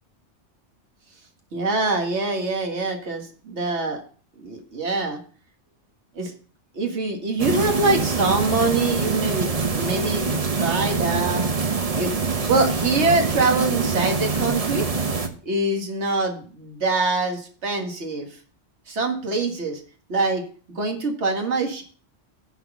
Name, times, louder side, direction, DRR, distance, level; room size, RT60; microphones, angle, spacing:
voice 1, 1.5-4.0 4.4-5.2 6.2-6.3 6.7-11.4 12.0-12.1 12.5-14.9 15.4-18.3 18.9-19.8 20.1-20.4 20.7-21.8, right 3 dB, 70° right, 3 dB, 1.9 m, -24 dB
sound 1, 7.4-15.3, right 4 dB, 35° right, 0.9 m, -24 dB
9.8 x 4.1 x 6.9 m, 0.42 s
omnidirectional pair, 1.2 m